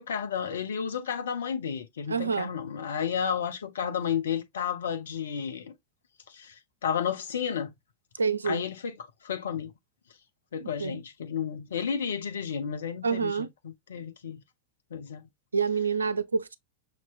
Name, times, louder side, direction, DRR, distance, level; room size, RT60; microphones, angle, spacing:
voice 1, 0.0-5.7 6.3-7.7 8.4-9.0 9.2-9.7 10.5-14.4 14.9-15.2, left 7 dB, 65° left, 0.8 m, -32 dB
voice 2, 2.1-2.5 8.2-8.6 10.6-11.0 13.0-13.5 15.5-16.6, right 5 dB, 75° right, 0.4 m, -27 dB
5.8 x 2.9 x 2.4 m
figure-of-eight pair, 90°, 0 cm